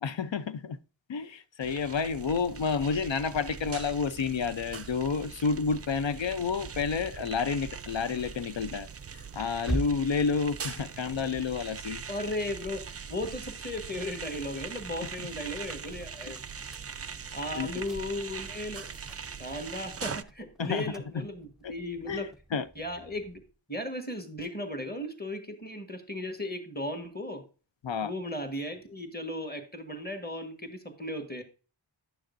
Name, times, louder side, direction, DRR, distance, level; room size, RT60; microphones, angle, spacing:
voice 1, 0.0-0.8 1.1-12.0 15.2-15.3 17.6-17.7 20.6-21.3 21.6-21.7 22.1-22.7 27.8-28.1, left 5 dB, 70° left, 0.7 m, -30 dB
sound 1, 1.6-20.2, right 6 dB, 35° right, 0.4 m, -41 dB
sound 2, 7.5-13.3 13.8-23.6, right 2 dB, ahead, 0.7 m, -44 dB
voice 2, 12.1-16.4 17.3-18.9 19.4-22.3 22.7-23.4 23.7-27.4 28.0-31.4, left 1 dB, 20° left, 1.6 m, -36 dB
10.5 x 6.4 x 2.6 m
wide cardioid pair, 40°, 46 cm